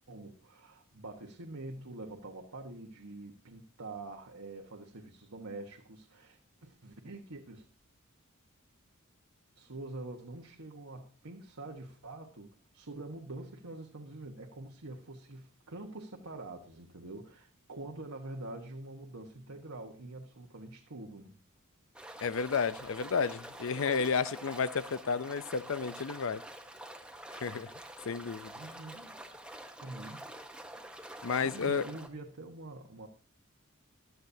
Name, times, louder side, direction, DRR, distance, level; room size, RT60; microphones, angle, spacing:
voice 1, 0.1-7.7 9.5-21.4 28.6-29.3 29.8-30.3 31.4-33.1, right 2 dB, 85° right, 1.4 m, -45 dB
sound 1, 21.9-32.1, right 1 dB, 5° right, 1.1 m, -47 dB
voice 2, 22.2-26.4 27.4-27.7 28.1-28.5 31.2-31.8, left 5 dB, 70° left, 0.6 m, -32 dB
15.5 x 12.0 x 2.8 m
head